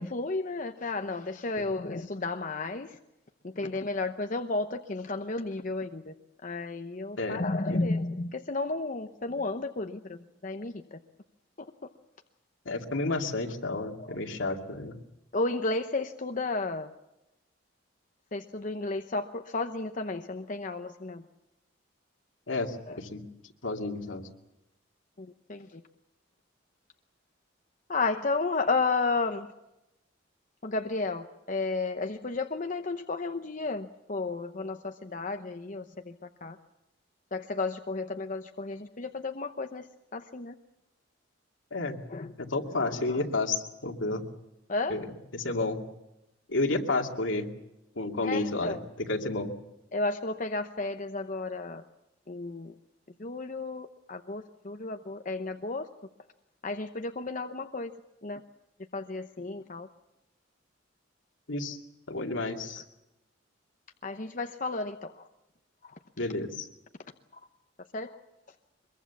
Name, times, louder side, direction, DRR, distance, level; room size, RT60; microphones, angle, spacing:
voice 1, 0.0-3.0 3.4-6.1 6.4-11.0 11.6-11.7 13.7-14.2 15.3-16.9 18.3-21.2 22.9-23.0 25.2-25.8 27.9-29.5 30.6-36.2 36.4-36.6 37.3-39.9 40.1-40.5 42.1-42.3 42.8-43.2 44.7-45.0 48.2-48.8 49.9-51.8 52.3-52.7 53.2-55.9 56.6-57.9 58.2-58.4 58.9-59.9 64.0-65.3 65.8-65.9 67.9-68.2, left 3 dB, 40° left, 6 dB, 0.8 m, -33 dB
voice 2, 7.2-7.9 12.7-15.0 22.5-23.2 23.6-24.3 41.7-42.0 42.4-44.2 44.9-45.1 45.3-45.8 46.5-47.5 48.0-48.8 49.1-49.5 61.5-61.8 62.1-62.8 66.2-66.7, left 2 dB, 75° left, 3 dB, 2.5 m, -31 dB
23.5 x 22.5 x 7.2 m, 0.93 s
head